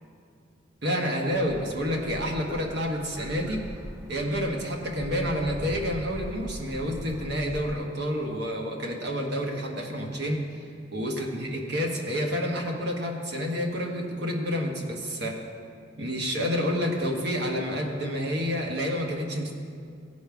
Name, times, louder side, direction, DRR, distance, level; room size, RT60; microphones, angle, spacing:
voice 1, 0.8-3.7 4.1-10.4 10.9-15.4 16.0-19.5, equal, 60° right, 1 dB, 1.3 m, -29 dB
sound 1, 1.3-7.7, equal, 15° right, 0.6 m, -41 dB
15.5 x 5.3 x 4.7 m, 2.3 s
head